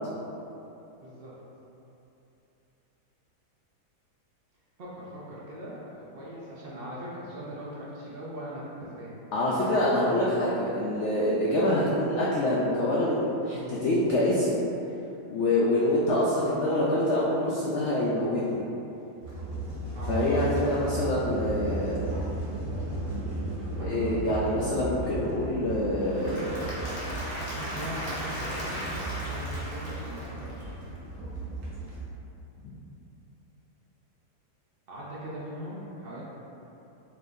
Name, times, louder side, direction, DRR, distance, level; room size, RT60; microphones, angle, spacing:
voice 1, 1.0-1.3 4.8-9.1 9.6-9.7 19.9-20.5 23.9-24.1 27.6-30.7 34.9-36.2, equal, 60° right, -7 dB, 0.6 m, -40 dB
voice 2, 9.3-14.6 15.3-18.6 20.1-22.0 23.8-26.5, left 1 dB, 80° left, -6 dB, 0.6 m, -26 dB
sound 1, 19.2-32.1, right 2 dB, 90° right, 1.5 m, -35 dB
Applause / Crowd, 25.9-30.9, equal, 45° left, 0.9 m, -37 dB
4.4 x 3.4 x 2.6 m, 2.9 s
omnidirectional pair, 1.8 m